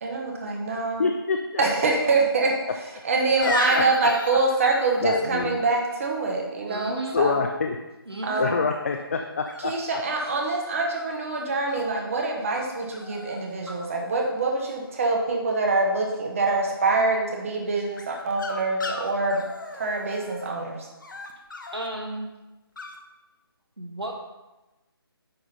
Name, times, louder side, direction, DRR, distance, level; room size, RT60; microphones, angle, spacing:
voice 1, 0.0-1.1 1.6-2.5 3.0-7.4 8.2-8.6 9.6-19.4 19.7-20.9, right 3 dB, 35° right, 1 dB, 1.2 m, -25 dB
voice 2, 1.0-1.6 3.8-4.1 5.0-5.6 7.1-7.8 8.4-10.0, left 4 dB, 35° left, 4 dB, 0.5 m, -26 dB
sound 1, 3.4-5.2 8.3-8.7 9.5-10.3 10.9-11.8 12.5-12.7 12.9-13.4 13.7-14.3 18.0-20.5 21.0-21.9 22.8-23.0, left 3 dB, 55° left, 1.0 m, -35 dB
voice 3, 6.7-7.2 8.1-8.4 13.7-13.8 21.7-22.3 23.8-24.1, right 2 dB, 80° right, 1 dB, 1.3 m, -33 dB
9.8 x 3.6 x 5.6 m, 1.1 s
figure-of-eight pair, 150°, 13 cm